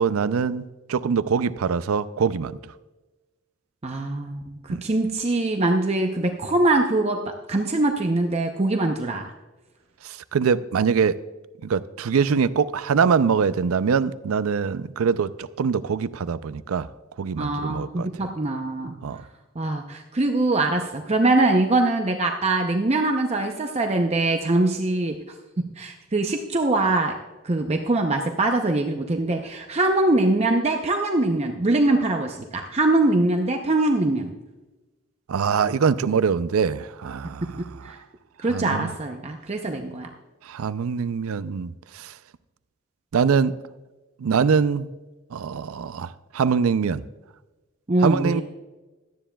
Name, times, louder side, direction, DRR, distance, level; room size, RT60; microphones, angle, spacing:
voice 1, 0.0-2.7 4.7-4.8 10.0-11.2 11.6-16.9 17.2-18.3 19.0-19.2 35.3-38.0 38.5-38.9 40.4-42.2 43.1-43.5 44.2-44.9 45.3-47.0 48.0-48.4, right 6 dB, 85° right, 0.4 m, -23 dB
voice 2, 3.8-9.3 17.4-19.0 19.6-25.2 25.8-27.1 27.4-34.3 37.8-38.0 38.4-40.1 47.9-48.4, right 2 dB, 30° right, 0.6 m, -23 dB
17.5 x 12.0 x 2.3 m
head